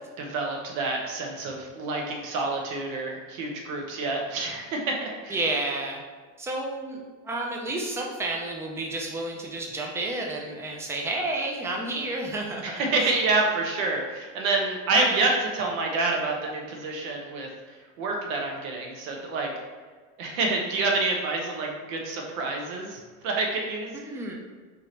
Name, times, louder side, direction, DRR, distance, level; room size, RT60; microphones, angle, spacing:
voice 1, 0.2-5.4 12.6-17.5 18.0-19.5 20.2-23.9, right 3 dB, 80° right, 0 dB, 1.0 m, -27 dB
voice 2, 5.3-6.0 6.4-7.0 7.2-13.1 23.9-24.3, right 2 dB, 5° right, 0 dB, 0.4 m, -31 dB
4.6 x 2.9 x 3.2 m, 1.4 s
supercardioid pair, 125°, 40 cm